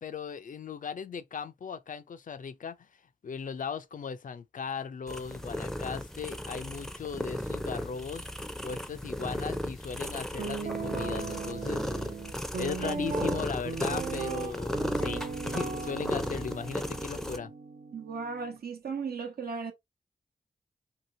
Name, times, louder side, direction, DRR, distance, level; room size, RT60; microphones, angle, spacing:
voice 1, 0.0-2.8 3.2-8.3 8.6-12.1 12.6-17.5, left 6 dB, 55° left, 0.4 m, -38 dB
sound 1, 5.1-17.4, equal, 5° left, 0.5 m, -35 dB
Guitar, 10.4-18.6, right 5 dB, 55° right, 0.5 m, -37 dB
voice 2, 17.9-19.7, right 5 dB, 75° right, 0.9 m, -36 dB
2.8 x 2.8 x 2.6 m
cardioid pair, 45°, 16 cm